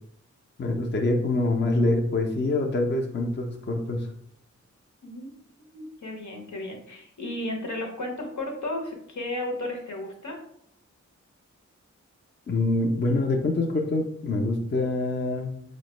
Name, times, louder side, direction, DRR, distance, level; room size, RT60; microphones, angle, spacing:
voice 1, 0.6-4.1 12.5-15.5, left 2 dB, 40° left, 2 dB, 0.4 m, -25 dB
voice 2, 5.0-5.3 5.7-10.4, left 1 dB, 75° left, 1 dB, 0.8 m, -34 dB
4.5 x 2.1 x 2.9 m, 0.70 s
wide cardioid pair, 60°, 30 cm